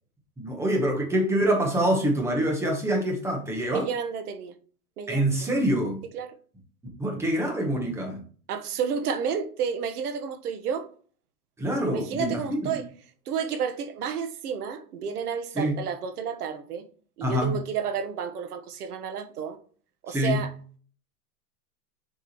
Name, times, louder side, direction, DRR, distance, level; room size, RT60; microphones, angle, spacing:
voice 1, 0.4-3.9 5.1-6.0 7.0-8.2 11.6-12.8 15.5-15.7 17.2-17.6 20.1-20.4, right 1 dB, 5° right, 1.0 m, -25 dB
voice 2, 3.7-4.5 5.0-5.3 6.1-6.3 8.5-10.9 11.8-12.9 13.3-16.8 17.2-19.6 20.0-20.5, right 7 dB, 85° right, 1.3 m, -31 dB
6.8 x 4.7 x 3.0 m
supercardioid pair, 160°, 45 cm